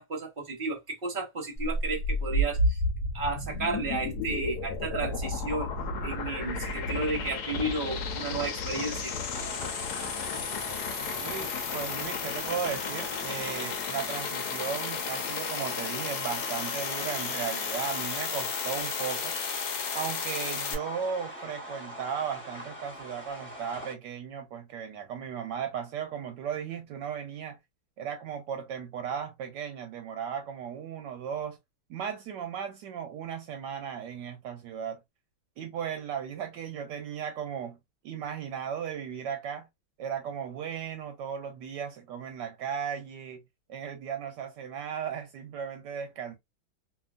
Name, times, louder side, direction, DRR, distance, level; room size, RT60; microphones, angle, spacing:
voice 1, 0.0-2.8 3.1-5.7 6.0-9.1, right 2 dB, 45° right, 0.7 m, -33 dB
sound 1, 1.6-20.8, left 3 dB, 65° left, 1.1 m, -32 dB
sound 2, 9.3-23.9, equal, 15° left, 0.3 m, -42 dB
voice 2, 11.2-19.4 19.9-27.6 28.0-31.6 31.9-35.0 35.6-37.8 38.0-39.7 40.0-43.4 43.7-46.4, right 7 dB, 75° right, 1.1 m, -36 dB
2.8 x 2.7 x 2.4 m
omnidirectional pair, 2.1 m